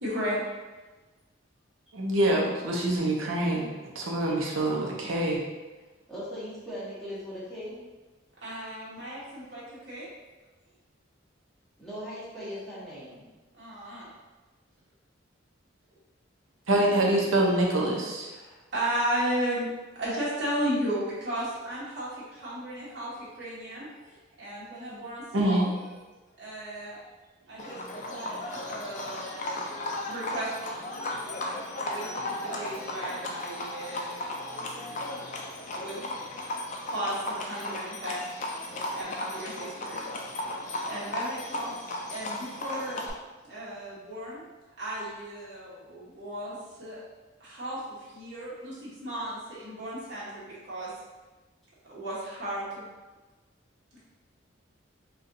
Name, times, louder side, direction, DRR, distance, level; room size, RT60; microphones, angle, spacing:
voice 1, 0.0-0.4 8.4-10.1 13.5-14.1 18.3-19.7 19.9-25.7 26.4-27.0 27.5-29.8 30.1-34.3 35.7-36.0 36.9-38.2 38.6-40.5 40.9-41.7 42.1-43.0 43.4-44.4 44.8-47.0 47.4-50.9 51.8-52.9 53.9-54.0, right 1 dB, 60° right, -9 dB, 1.2 m, -35 dB
voice 2, 1.9-3.7 3.9-5.4 16.7-18.3 25.3-25.7, right 1 dB, 90° right, -2 dB, 0.7 m, -25 dB
voice 3, 6.1-7.8 11.8-13.3, equal, ahead, -11 dB, 1.0 m, -39 dB
Livestock farm animals working animals, 27.6-43.1, left 1 dB, 40° left, 0.4 m, -35 dB
4.1 x 2.4 x 2.6 m, 1.2 s
head